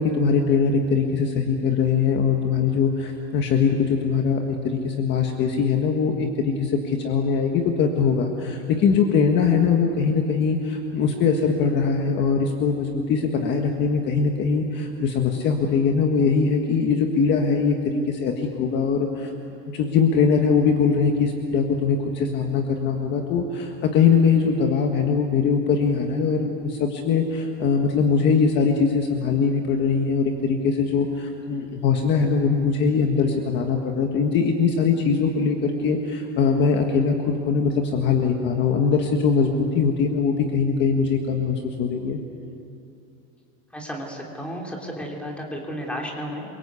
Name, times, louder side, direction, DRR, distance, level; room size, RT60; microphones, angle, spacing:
voice 1, 0.0-19.3 19.7-42.2, left 5 dB, 30° left, 3 dB, 1.6 m, -22 dB
voice 2, 43.7-46.5, equal, 5° left, -1 dB, 3.0 m, -33 dB
28.0 x 23.5 x 8.3 m, 2.6 s
cardioid pair, 175°, 33 cm